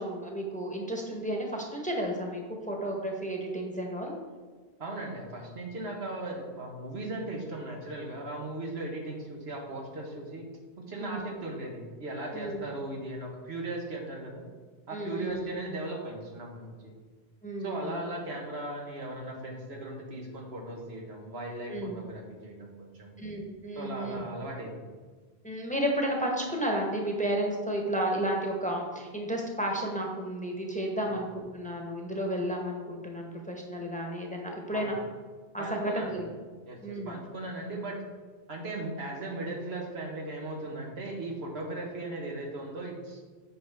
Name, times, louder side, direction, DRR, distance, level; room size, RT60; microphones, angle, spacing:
voice 1, 0.0-4.2 11.0-11.2 12.3-12.7 14.9-15.5 17.4-18.0 21.7-22.0 23.2-24.3 25.4-35.0 35.5-36.3 36.8-37.2, right 1 dB, 10° left, 0 dB, 1.1 m, -32 dB
voice 2, 4.8-10.4 10.9-14.4 14.9-16.9 17.6-23.1 23.7-24.9 31.0-31.2 34.7-35.0 35.6-36.2 36.7-38.0 38.5-43.2, right 2 dB, 90° right, 0 dB, 1.6 m, -38 dB
8.5 x 5.6 x 3.5 m, 1.4 s
omnidirectional pair, 1.0 m